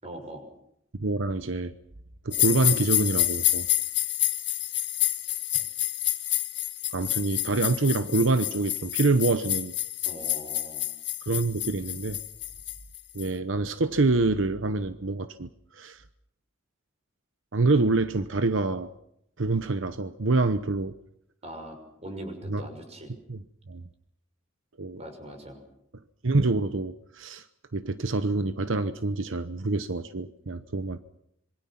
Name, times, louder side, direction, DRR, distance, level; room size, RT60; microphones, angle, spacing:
voice 1, 0.0-0.4 10.0-10.8 21.4-23.1 25.0-25.6 30.1-30.2, right 1 dB, 35° right, 5 dB, 6.1 m, -41 dB
voice 2, 0.9-1.7 2.2-3.7 6.9-9.7 11.2-12.2 13.1-16.0 17.5-18.9 19.4-20.9 22.5-22.6 23.3-23.4 23.7-23.8 24.8-25.0 26.2-27.5 27.7-31.0, right 3 dB, 85° right, 11 dB, 1.0 m, -26 dB
sound 1, 2.3-13.3, left 14 dB, 60° left, 1.9 m, -28 dB
26.5 x 24.0 x 5.9 m, 0.76 s
head